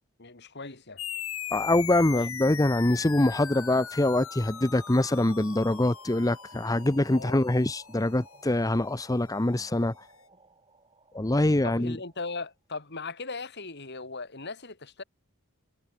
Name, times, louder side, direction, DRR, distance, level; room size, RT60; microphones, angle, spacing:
voice 1, 0.2-1.0 2.1-2.3 7.1-7.5 11.6-15.0, left 3 dB, 50° left, 2.9 m, -38 dB
sound 1, 1.0-9.9, left 9 dB, 65° left, 6.8 m, -40 dB
voice 2, 1.5-9.9 11.1-12.0, left 1 dB, 15° left, 0.7 m, -24 dB
sound 2, 2.8-12.5, right 3 dB, 25° right, 7.6 m, -57 dB
head